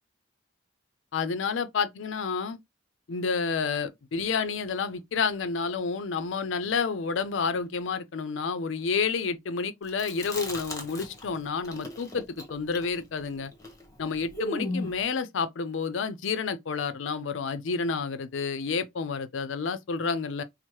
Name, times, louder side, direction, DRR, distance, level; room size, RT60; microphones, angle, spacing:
voice 1, 1.1-2.6 3.1-13.5 14.0-20.4, left 5 dB, 75° left, 0.5 m, -30 dB
Chewing mastication, 9.9-11.4 11.6-15.0, left 1 dB, 15° left, 0.9 m, -36 dB
4.5 x 2.0 x 2.9 m
head